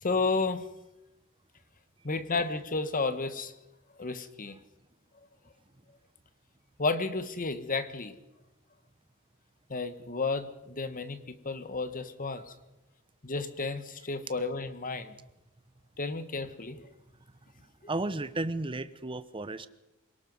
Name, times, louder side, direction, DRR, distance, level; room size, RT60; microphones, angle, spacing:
voice 1, 0.0-0.6 2.0-3.5 4.0-4.6 6.8-8.1 9.7-12.4 13.2-15.1 16.0-16.9, left 3 dB, 40° left, 11 dB, 1.5 m, -32 dB
voice 2, 17.9-19.7, right 2 dB, 25° right, 13 dB, 0.9 m, -33 dB
27.0 x 18.5 x 5.5 m, 0.94 s
head